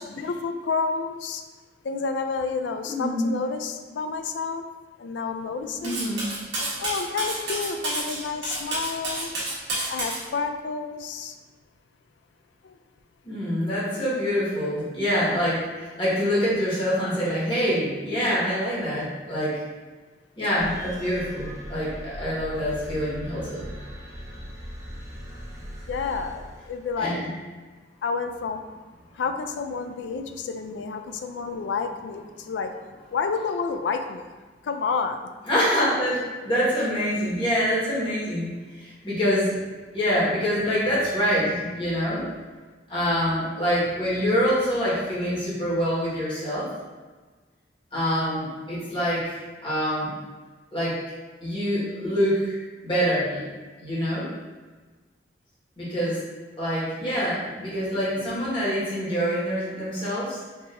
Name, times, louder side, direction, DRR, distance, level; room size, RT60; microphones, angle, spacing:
voice 1, 0.0-1.4 1.8-4.7 5.0-6.0 6.6-9.3 9.9-11.4 12.6-12.8 25.9-27.2 28.0-28.6 29.1-32.7 33.1-34.3 34.6-35.3, left 5 dB, 80° left, 7 dB, 0.4 m, -30 dB
voice 2, 2.8-3.2 5.8-6.3 13.2-19.6 20.4-23.7 27.0-27.3 35.5-38.5 38.7-39.5 39.9-42.2 42.9-46.7 47.9-50.1 50.7-51.0 51.4-53.4 53.8-54.3 55.8-56.2 56.6-60.4, equal, 30° left, -9 dB, 1.5 m, -25 dB
Cutlery silverware, 5.8-10.2, right 2 dB, 75° right, 1.3 m, -30 dB
sound 1, 20.6-27.2, equal, 15° right, 0.7 m, -40 dB
4.7 x 2.8 x 2.6 m, 1.3 s
head